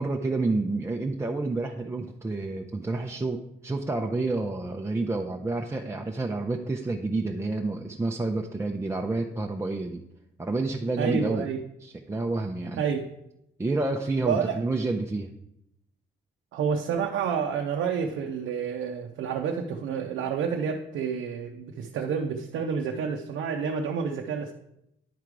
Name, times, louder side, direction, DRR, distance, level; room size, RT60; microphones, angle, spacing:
voice 1, 0.0-10.0 10.4-11.5 11.8-12.8 13.6-15.3, right 2 dB, 15° right, 2 dB, 0.5 m, -29 dB
voice 2, 11.0-11.6 12.8-13.1 14.2-14.6 16.5-24.5, right 6 dB, 80° right, 2 dB, 0.6 m, -29 dB
10.0 x 3.7 x 4.6 m, 0.80 s
cardioid pair, 90°, 20 cm